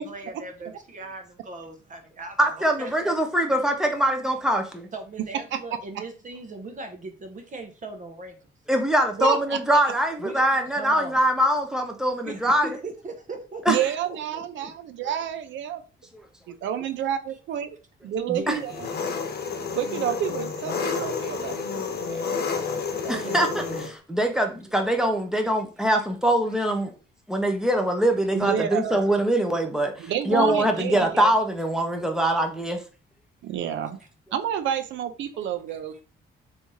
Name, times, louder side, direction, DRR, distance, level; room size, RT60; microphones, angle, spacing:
voice 1, 0.0-3.0 4.9-8.4 9.2-9.3 10.2-11.2 12.2-14.7 18.3-18.7 23.0-23.9 30.0-31.2 35.7-35.8, right 3 dB, 40° right, 5 dB, 0.9 m, -39 dB
voice 2, 2.4-4.9 8.7-12.7 13.7-13.8 18.5-18.6 23.1-26.9 27.3-32.8, right 1 dB, 5° right, 3 dB, 0.8 m, -23 dB
voice 3, 9.2-9.6 13.7-15.8 16.5-17.7 18.0-18.9 19.7-22.3 23.3-23.4 28.3-29.0 30.0-31.3 33.4-34.0 34.3-36.0, right 9 dB, 70° right, 10 dB, 0.5 m, -29 dB
Engine, 18.6-23.9, left 5 dB, 55° left, 0.9 m, -30 dB
3.4 x 2.7 x 3.1 m, 0.35 s
cardioid pair, 90°, 20 cm